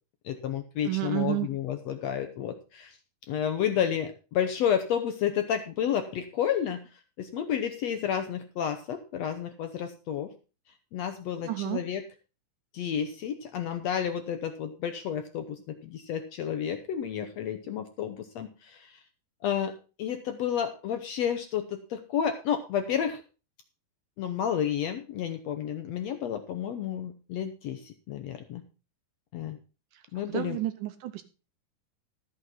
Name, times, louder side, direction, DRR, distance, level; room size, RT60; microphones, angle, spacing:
voice 1, 0.2-3.0 3.3-6.8 7.2-10.3 10.9-12.0 12.7-19.0 19.4-19.7 20.0-23.2 24.2-28.6 29.3-29.6 30.1-30.6, left 9 dB, 70° left, 8 dB, 1.6 m, -31 dB
voice 2, 0.8-1.5 11.4-11.8 29.9-30.0 30.3-31.2, right 16 dB, 75° right, 9 dB, 2.2 m, -30 dB
13.5 x 6.5 x 5.6 m, 0.33 s
omnidirectional pair, 4.1 m